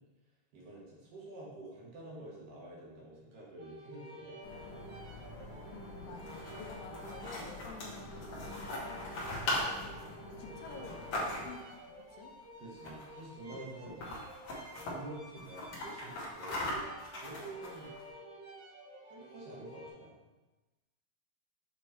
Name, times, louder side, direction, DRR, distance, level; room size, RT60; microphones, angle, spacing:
voice 1, 0.5-4.4 12.6-17.9 19.1-20.2, right 2 dB, 75° right, -5 dB, 2.8 m, -48 dB
sound 1, 3.6-19.9, right 1 dB, 90° right, 3.8 m, -51 dB
sound 2, 4.4-11.5, left 2 dB, 70° left, 2.5 m, -49 dB
voice 2, 5.7-9.1 9.4-10.1 10.4-12.4, left 5 dB, 85° left, 3 dB, 2.3 m, -51 dB
sound 3, 6.1-11.7 12.8-13.2 13.5-13.6 13.9-14.9 15.4-18.0, left 1 dB, 55° left, 1.7 m, -39 dB
7.6 x 3.1 x 4.2 m, 1.1 s
omnidirectional pair, 4.0 m